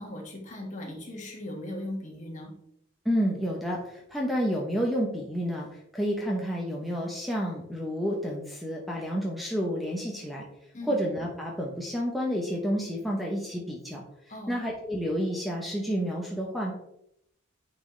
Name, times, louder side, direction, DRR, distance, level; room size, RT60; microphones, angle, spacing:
voice 1, 0.0-2.5 10.7-10.9 14.3-14.5, left 1 dB, 35° left, 0 dB, 1.6 m, -38 dB
voice 2, 3.0-5.7 5.9-10.4 10.9-14.0 14.5-16.7, equal, ahead, -1 dB, 0.7 m, -30 dB
9.4 x 3.9 x 3.2 m, 0.77 s
head